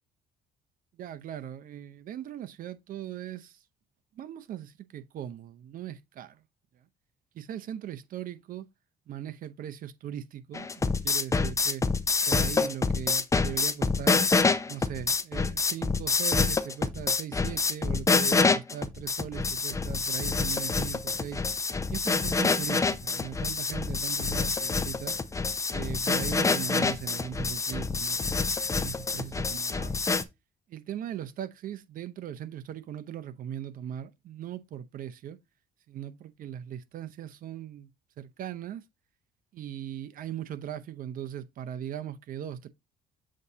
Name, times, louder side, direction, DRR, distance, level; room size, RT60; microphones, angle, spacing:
voice 1, 0.9-3.6 4.1-6.4 7.3-8.7 9.1-11.8 12.3-14.3 14.7-21.4 21.9-25.2 25.7-28.4 28.7-30.0 30.7-35.4 35.9-37.9 38.2-38.8 39.5-42.7, right 10 dB, 55° right, 0.7 m, -39 dB
sound 1, 10.5-30.2, left 4 dB, 20° left, 0.6 m, -27 dB
7.6 x 2.8 x 4.8 m
cardioid pair, 110°, 17 cm